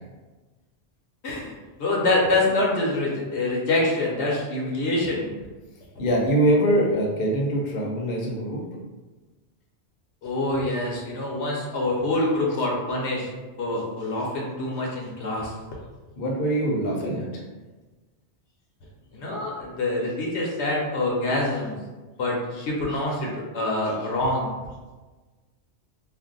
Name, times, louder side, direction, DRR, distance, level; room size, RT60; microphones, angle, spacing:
voice 1, 1.8-5.3 10.2-13.3 13.6-15.5 19.1-21.8 22.2-24.5, left 2 dB, 80° left, -2 dB, 1.0 m, -25 dB
voice 2, 6.0-8.6 16.2-17.3, right 1 dB, 60° left, -2 dB, 0.8 m, -23 dB
2.5 x 2.1 x 3.8 m, 1.2 s
omnidirectional pair, 1.1 m